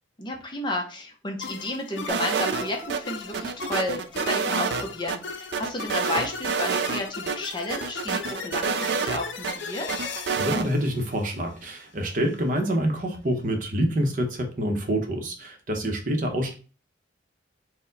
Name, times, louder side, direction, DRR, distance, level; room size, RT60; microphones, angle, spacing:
voice 1, 0.2-10.0, left 2 dB, 25° left, 2 dB, 0.6 m, -32 dB
sound 1, 1.4-11.8, left 4 dB, 75° left, 0.5 m, -38 dB
Piano, 2.1-5.2 5.5-5.9, right 3 dB, 5° right, 1.1 m, -45 dB
sound 2, 2.1-3.0 3.3-5.2 5.5-7.0 7.3-7.4 7.7-9.5 9.9-10.7, right 5 dB, 60° right, 0.3 m, -27 dB
voice 2, 10.4-16.5, equal, 45° right, 3 dB, 0.7 m, -26 dB
4.3 x 2.1 x 3.8 m, 0.36 s
head